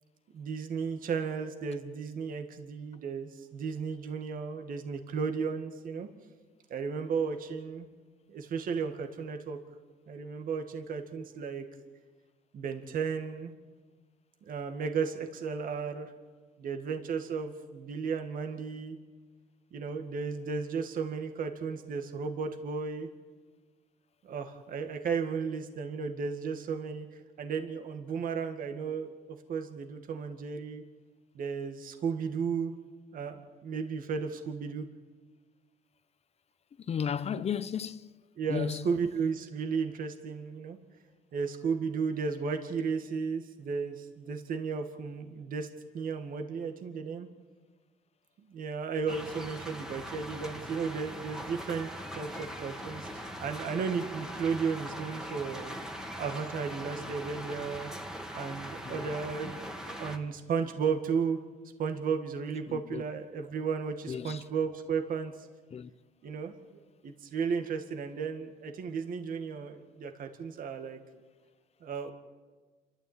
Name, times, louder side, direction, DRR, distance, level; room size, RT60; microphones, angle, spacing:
voice 1, 0.3-6.1 6.7-7.9 8.3-9.6 10.1-11.7 12.5-13.5 14.5-16.1 16.6-19.0 19.7-23.1 24.2-27.1 27.4-29.1 29.5-30.8 31.3-32.7 33.1-33.4 33.6-34.8 38.4-40.8 41.3-45.7 45.9-47.3 48.5-55.8 56.2-57.9 58.3-61.4 61.8-65.3 66.2-71.0 71.8-72.1, right 5 dB, 55° right, 2.1 m, -34 dB
voice 2, 36.8-38.2 38.5-38.9 58.9-59.2 62.7-63.0 64.1-64.4 65.7-65.9, left 8 dB, 40° left, 0.8 m, -34 dB
sound 1, 49.1-60.2, equal, 5° right, 2.3 m, -41 dB
28.0 x 13.0 x 9.0 m
cardioid pair, 110°, 17 cm